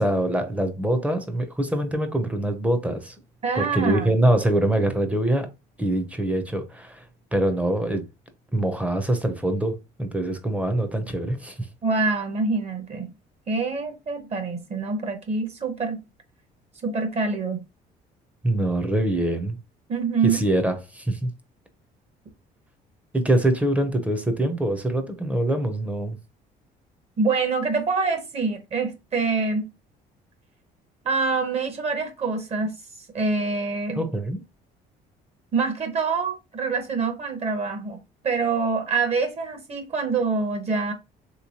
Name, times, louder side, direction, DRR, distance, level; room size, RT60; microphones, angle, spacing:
voice 1, 0.0-3.2 3.6-5.5 5.8-7.0 7.3-8.1 8.5-11.7 18.4-19.6 20.2-21.3 23.1-26.2 34.0-34.4, right 1 dB, 10° right, 0.6 m, -24 dB
voice 2, 3.4-4.1 11.8-13.1 13.5-16.0 16.8-17.6 19.9-20.4 27.2-29.6 31.0-32.7 33.1-34.0 35.5-40.9, right 4 dB, 40° right, 0.9 m, -25 dB
3.2 x 3.0 x 2.8 m
cardioid pair, 110°, 17 cm